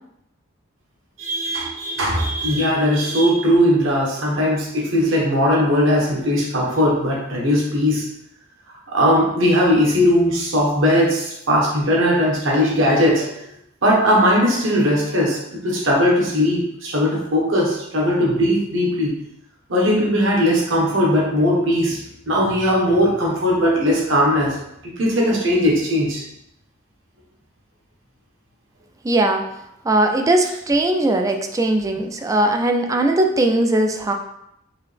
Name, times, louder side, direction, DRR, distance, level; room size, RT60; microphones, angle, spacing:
voice 1, 1.2-8.0 8.9-13.3 13.8-15.4 15.6-19.1 19.7-22.0 22.3-24.6 25.0-26.2, equal, 70° right, -3 dB, 1.3 m, -18 dB
voice 2, 29.0-29.5 29.8-34.1, right 1 dB, 15° right, 4 dB, 0.3 m, -19 dB
4.7 x 2.8 x 3.3 m, 0.80 s
head